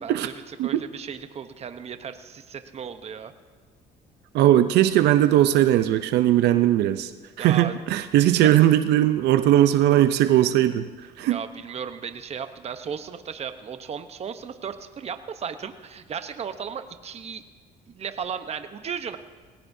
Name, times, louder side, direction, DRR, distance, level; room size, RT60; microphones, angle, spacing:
voice 1, 0.0-3.3 7.4-7.7 8.4-8.5 11.2-17.4 17.9-19.2, right 7 dB, 40° right, 9 dB, 0.9 m, -35 dB
voice 2, 4.3-7.1 7.4-10.9 11.2-11.4, right 12 dB, 80° right, 10 dB, 0.6 m, -19 dB
20.5 x 17.5 x 2.7 m, 1.4 s
cardioid pair, 110°, 17 cm